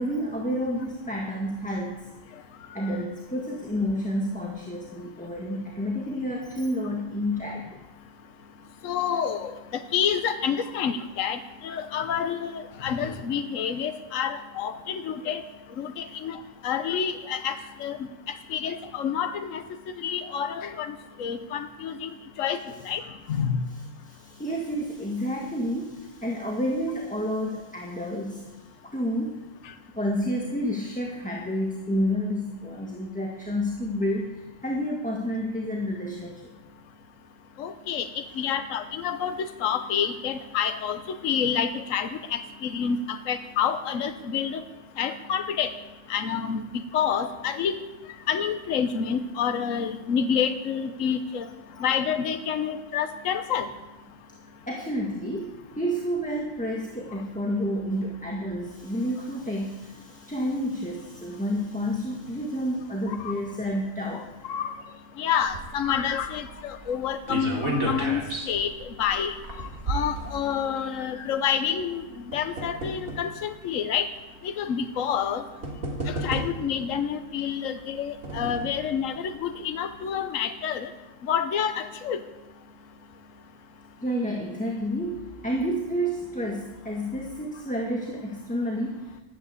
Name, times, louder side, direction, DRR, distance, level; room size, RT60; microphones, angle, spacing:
voice 1, 0.0-2.1 2.7-7.8 24.0-28.5 28.8-29.4 29.9-36.5 54.7-64.3 84.0-89.2, equal, 5° left, -1 dB, 1.7 m, -30 dB
voice 2, 8.8-15.4 15.8-19.6 20.0-22.1 22.4-22.6 22.8-23.0 23.3-23.7 37.6-44.6 45.0-45.7 46.1-47.7 48.3-51.5 51.8-53.7 63.1-63.3 64.5-64.7 65.2-72.0 72.3-74.1 74.4-75.4 76.1-80.9 81.3-82.2, left 7 dB, 70° left, 8 dB, 1.3 m, -28 dB
sound 1, 65.4-70.9 71.8-73.3 74.1-74.2 75.2-75.3 75.6-76.8 77.8-78.9 79.3-79.4 79.7-79.8, right 1 dB, 85° right, 3.2 m, -33 dB
13.0 x 12.5 x 8.3 m, 1.1 s
omnidirectional pair, 1.4 m